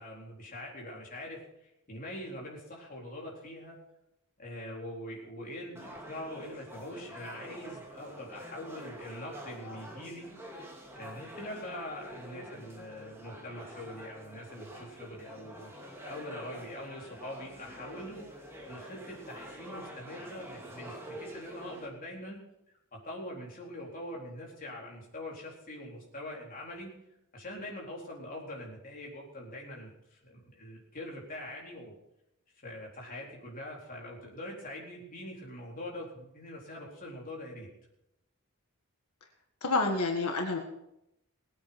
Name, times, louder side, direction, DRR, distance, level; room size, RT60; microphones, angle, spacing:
voice 1, 0.0-3.8 4.4-10.3 11.0-22.4 22.9-26.9 27.3-31.9 32.6-37.7, left 1 dB, 40° left, -2 dB, 4.1 m, -43 dB
sound 1, 5.8-21.9, equal, 10° right, 2.6 m, -47 dB
voice 2, 39.6-40.6, left 3 dB, 85° left, 2 dB, 1.7 m, -28 dB
19.5 x 8.8 x 6.0 m, 0.84 s
head